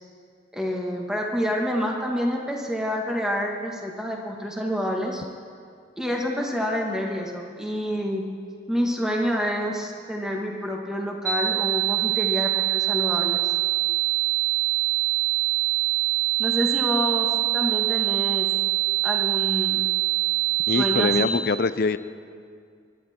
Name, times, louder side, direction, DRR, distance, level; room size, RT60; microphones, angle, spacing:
voice 1, 0.5-5.2 6.0-8.2 8.7-13.5 16.4-18.5 19.0-19.8 20.7-21.4, equal, 5° right, 0 dB, 1.5 m, -28 dB
sound 1, 11.2-21.2, right 22 dB, 45° right, 2.2 m, -24 dB
voice 2, 20.7-22.0, left 4 dB, 55° left, 14 dB, 0.4 m, -23 dB
24.0 x 11.5 x 4.3 m, 2.2 s
head